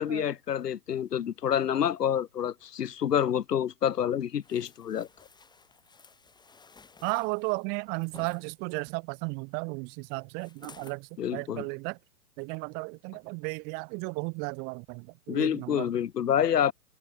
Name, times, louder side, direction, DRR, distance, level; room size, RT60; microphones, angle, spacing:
voice 1, 0.0-5.1 11.2-11.7 15.3-16.7, left 9 dB, 90° left, 1.2 m, -28 dB
sound 1, 4.4-8.4 10.4-11.0 11.5-11.7, left 5 dB, 10° left, 6.0 m, -54 dB
voice 2, 7.0-12.0 12.4-15.9, right 33 dB, 20° right, 0.8 m, -34 dB
open air
hypercardioid pair, 140°, 46 cm